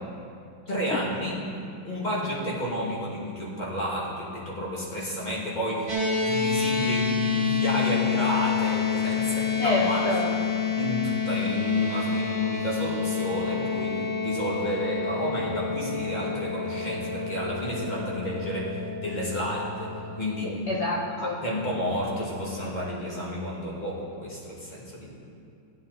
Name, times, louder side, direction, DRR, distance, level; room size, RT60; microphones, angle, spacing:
voice 1, 0.7-1.4 1.8-10.4 10.8-20.6 21.2-25.2, equal, 25° left, -5 dB, 2.2 m, -31 dB
sound 1, 5.9-20.3, left 6 dB, 60° right, 2.2 m, -28 dB
voice 2, 9.6-10.3 20.4-21.3, left 2 dB, 45° left, -3 dB, 1.1 m, -27 dB
16.0 x 8.4 x 4.0 m, 2.5 s
omnidirectional pair, 2.1 m